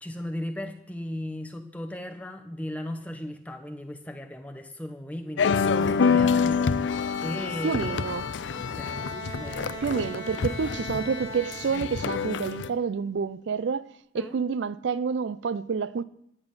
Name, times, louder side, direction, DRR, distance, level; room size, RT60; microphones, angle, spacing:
voice 1, 0.0-8.0 8.5-9.8 14.2-14.4, left 1 dB, 10° left, 0.8 m, -37 dB
sound 1, 5.4-12.7, left 5 dB, 85° left, 0.5 m, -27 dB
voice 2, 7.6-8.3 9.8-13.9 14.1-16.0, right 5 dB, 80° right, 0.4 m, -28 dB
Bowed string instrument, 8.9-12.1, right 4 dB, 55° right, 1.1 m, -41 dB
10.5 x 8.8 x 5.5 m
head